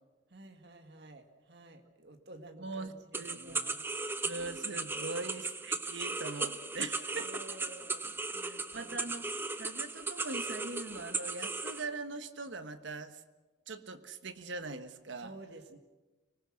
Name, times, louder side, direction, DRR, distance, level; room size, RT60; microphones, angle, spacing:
voice 1, 0.3-3.8 4.9-5.2 7.1-9.1 15.2-15.8, right 1 dB, 60° right, 5 dB, 2.0 m, -52 dB
voice 2, 2.6-3.6 4.2-7.4 8.4-9.2 9.6-13.2 13.7-15.3, right 3 dB, 80° right, 9 dB, 1.2 m, -41 dB
sound 1, 3.1-11.8, right 3 dB, 10° right, 0.7 m, -37 dB
25.5 x 19.5 x 6.4 m, 1.2 s
head